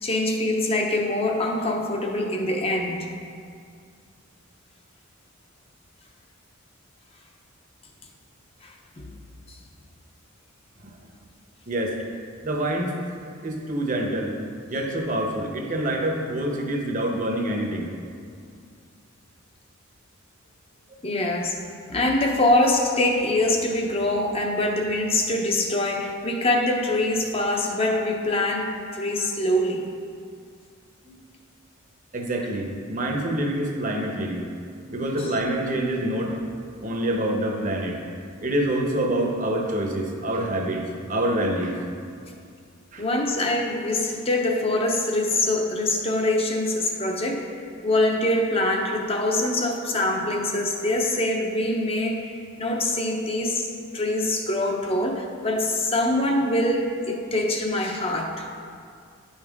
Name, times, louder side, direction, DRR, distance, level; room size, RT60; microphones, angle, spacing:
voice 1, 0.0-3.1 8.6-9.0 9.5-9.6 21.0-21.6 21.9-29.8 35.2-35.4 43.0-47.4 47.8-52.3 52.6-53.7 53.9-58.5, left 1 dB, 30° left, 2 dB, 0.7 m, -24 dB
voice 2, 12.4-12.9 13.4-14.3 14.7-17.9 31.1-31.2 32.1-34.5 34.9-36.4 36.8-38.0 38.4-40.8 41.1-41.8 42.9-43.0, right 1 dB, 40° right, 1 dB, 0.9 m, -26 dB
9.9 x 5.6 x 3.6 m, 2.3 s
head